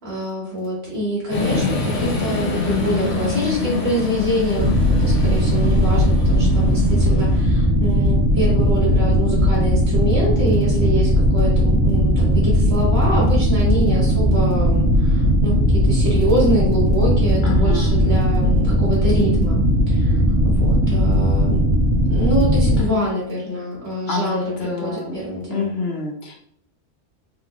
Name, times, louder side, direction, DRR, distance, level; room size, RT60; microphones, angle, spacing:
voice 1, 0.0-21.6 22.1-25.7, equal, 60° right, -5 dB, 1.7 m, -25 dB
sound 1, 1.3-7.4, left 3 dB, 80° left, 1.2 m, -24 dB
sound 2, 4.5-22.8, equal, 75° right, 1.3 m, -17 dB
voice 2, 17.4-18.0 22.8-23.0 24.1-25.2 25.5-26.3, left 3 dB, 65° left, 0 dB, 0.9 m, -27 dB
3.9 x 2.9 x 2.4 m, 0.65 s
omnidirectional pair, 1.2 m